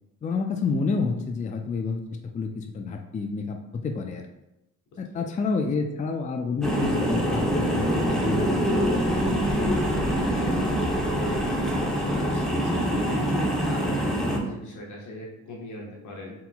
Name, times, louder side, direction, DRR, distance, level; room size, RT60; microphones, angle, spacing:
voice 1, 0.2-2.0 2.3-4.3 5.0-10.0 10.2-11.0, left 4 dB, 25° left, 4 dB, 0.4 m, -30 dB
sound 1, 6.6-14.4, equal, ahead, 0.8 m, -25 dB
voice 2, 12.0-16.3, left 1 dB, 75° left, -2 dB, 1.3 m, -38 dB
4.4 x 3.8 x 2.2 m, 0.92 s
cardioid pair, 90°, 30 cm